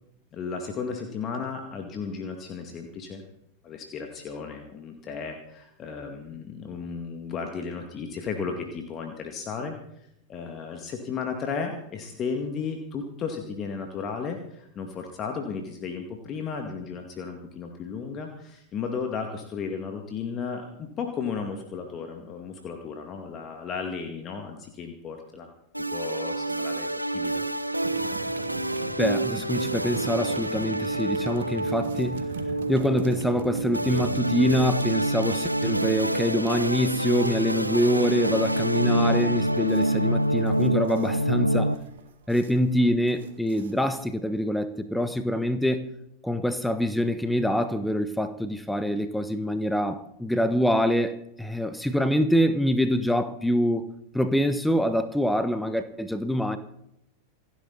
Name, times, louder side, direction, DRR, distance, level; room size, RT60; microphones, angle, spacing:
voice 1, 0.3-3.2 3.6-25.5 25.9-26.9 27.1-27.4, left 5 dB, 30° left, 3 dB, 2.2 m, -34 dB
sound 1, 25.7-41.8, right 1 dB, 85° right, 0.9 m, -27 dB
sound 2, 27.8-44.1, right 5 dB, 60° right, 2.0 m, -41 dB
voice 2, 29.0-32.2 32.7-41.7 42.3-45.9 46.2-53.9 54.1-56.6, equal, 5° left, 11 dB, 1.2 m, -25 dB
28.0 x 10.5 x 4.2 m, 0.79 s
figure-of-eight pair, 90°, 0 cm